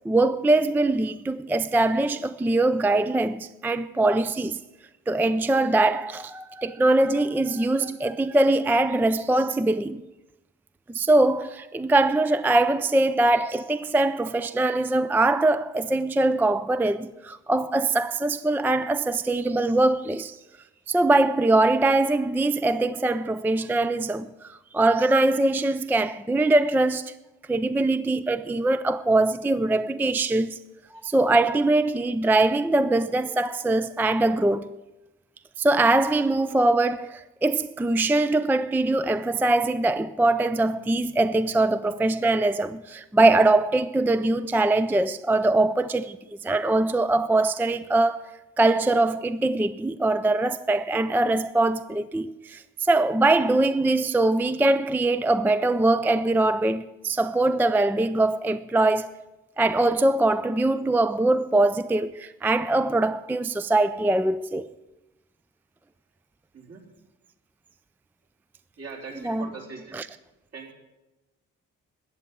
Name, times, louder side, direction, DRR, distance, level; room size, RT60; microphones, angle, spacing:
voice 1, 0.1-4.6 5.1-10.0 10.9-20.4 20.9-27.1 27.5-30.6 31.0-34.8 35.6-46.2 46.4-48.3 48.6-59.2 59.6-64.7 69.2-69.5 69.9-70.1, right 2 dB, 5° right, 0.4 m, -22 dB
voice 2, 66.5-66.8 68.8-70.1 70.5-70.7, right 4 dB, 55° right, 4.1 m, -41 dB
13.5 x 8.3 x 9.1 m
cardioid pair, 90°, 30 cm